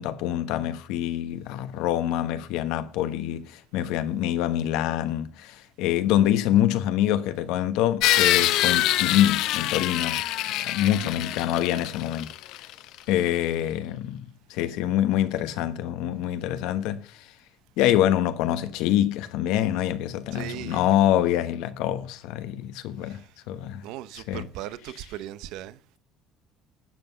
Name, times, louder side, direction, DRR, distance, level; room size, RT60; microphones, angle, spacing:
voice 1, 0.0-10.2 10.6-12.6 13.1-17.2 17.8-23.2 23.5-23.8 24.3-24.4, left 12 dB, 85° left, 1.2 m, -25 dB
sound 1, 8.0-12.7, left 14 dB, 70° left, 0.8 m, -25 dB
voice 2, 20.3-20.9 23.0-23.4 23.8-26.0, right 13 dB, 75° right, 0.8 m, -38 dB
12.0 x 8.0 x 6.8 m
cardioid pair, 155°, 0 cm